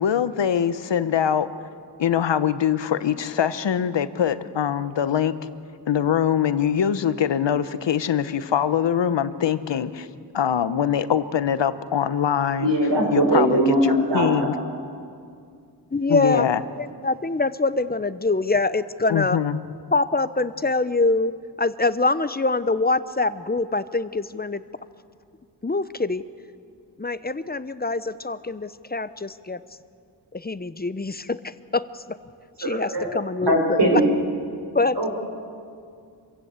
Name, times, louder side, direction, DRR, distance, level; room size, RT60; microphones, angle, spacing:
voice 1, 0.0-1.5 2.0-5.3 5.9-10.1 10.3-12.8 13.1-14.5 16.1-16.6 19.1-19.6, left 8 dB, 80° left, 13 dB, 1.0 m, -23 dB
voice 2, 12.6-14.5 32.6-33.1 33.5-34.0 35.0-35.1, right 1 dB, 70° right, 2 dB, 4.8 m, -20 dB
voice 3, 15.9-16.5 16.8-19.4 19.9-24.6 25.6-26.2 27.0-29.6 30.3-32.2 32.6-34.0 34.7-35.1, left 3 dB, 20° left, 14 dB, 0.7 m, -24 dB
25.5 x 16.0 x 8.2 m, 2.3 s
cardioid pair, 65°, 43 cm